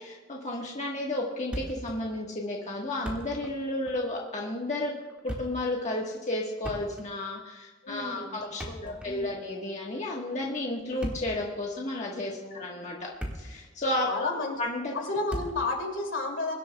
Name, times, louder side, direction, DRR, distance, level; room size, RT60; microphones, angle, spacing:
voice 1, 0.0-4.9 5.2-13.1 13.3-14.3 14.6-14.9, left 1 dB, 35° left, -2 dB, 1.4 m, -32 dB
Thump thud, 1.5-2.0 2.3-2.4 2.9-3.6 3.9-4.0 5.0-5.7 6.6-7.2 8.4-9.4 10.8-11.5 12.2-12.3 12.9-13.7 13.9-14.1 15.3-15.7, equal, 5° right, 1.8 m, -38 dB
voice 2, 7.8-8.3 8.6-9.4 12.4-12.6 14.0-14.6 14.9-16.5, left 3 dB, 70° left, 2 dB, 2.7 m, -32 dB
23.0 x 12.0 x 2.3 m, 1.3 s
head